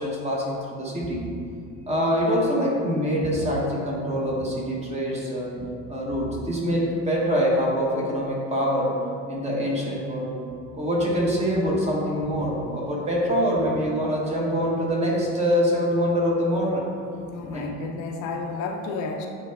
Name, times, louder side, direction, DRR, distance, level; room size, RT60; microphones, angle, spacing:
voice 1, 0.0-1.3 1.9-9.0 9.3-10.3 10.7-16.9 17.4-18.0, equal, 20° right, -3 dB, 1.1 m, -25 dB
voice 2, 17.3-19.3, left 4 dB, 65° left, 3 dB, 0.7 m, -32 dB
8.6 x 3.3 x 3.4 m, 2.5 s
cardioid pair, 140°, 32 cm